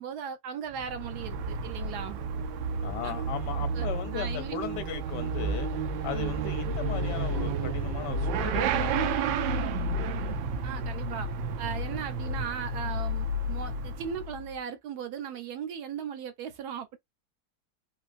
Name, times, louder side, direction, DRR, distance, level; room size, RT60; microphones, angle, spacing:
voice 1, 0.0-2.2 3.0-3.2 3.8-4.6 6.1-6.5 10.6-11.3 11.6-17.0, right 7 dB, 65° right, 1.1 m, -38 dB
Motorcycle / Accelerating revving vroom, 0.7-14.5, right 3 dB, 90° right, 1.3 m, -31 dB
voice 2, 2.8-9.1, left 11 dB, 70° left, 1.3 m, -37 dB
3.8 x 2.8 x 2.5 m
omnidirectional pair, 2.0 m